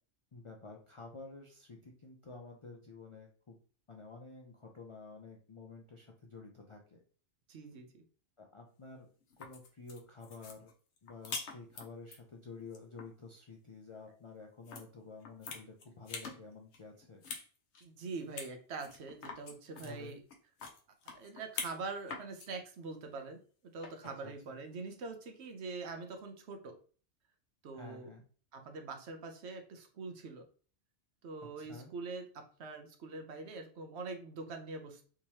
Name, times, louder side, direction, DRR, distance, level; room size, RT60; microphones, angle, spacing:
voice 1, 0.3-3.6 3.9-7.0 8.4-9.1 9.4-10.7 11.0-17.2 19.8-20.2 24.2-24.6 27.7-28.2 31.4-31.9, left 3 dB, 50° left, 1 dB, 0.3 m, -51 dB
voice 2, 7.5-8.0 17.8-20.2 21.1-23.4 23.7-26.7 27.6-28.1 28.5-30.5 31.2-35.0, right 4 dB, 70° right, 5 dB, 1.0 m, -44 dB
sound 1, 9.2-12.2 12.6-13.1 14.7-14.8 15.2-16.4 16.7-17.5 17.7-17.8 18.4-18.5 18.8-21.8 22.1-22.5 23.8-24.2, left 4 dB, 75° left, 1.0 m, -44 dB
3.6 x 3.0 x 2.8 m, 0.42 s
omnidirectional pair, 1.2 m